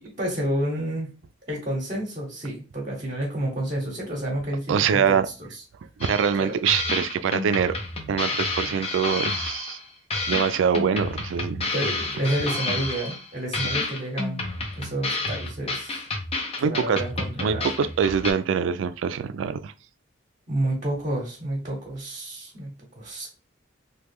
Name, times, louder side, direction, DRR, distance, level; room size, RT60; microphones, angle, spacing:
voice 1, 0.0-1.1 1.5-5.0 5.4-5.6 6.4-6.6 11.7-14.4 14.8-16.0 16.6-17.7 20.5-23.3, right 1 dB, 35° right, 0.9 m, -30 dB
voice 2, 4.7-5.3 6.0-7.7 8.1-9.8 10.2-11.7 16.6-17.0 17.4-19.7, right 7 dB, 75° right, 0.3 m, -24 dB
sound 1, 6.0-6.4 6.7-9.8 10.1-13.3 13.5-18.3, left 2 dB, 30° left, 0.6 m, -30 dB
3.0 x 2.2 x 3.5 m
head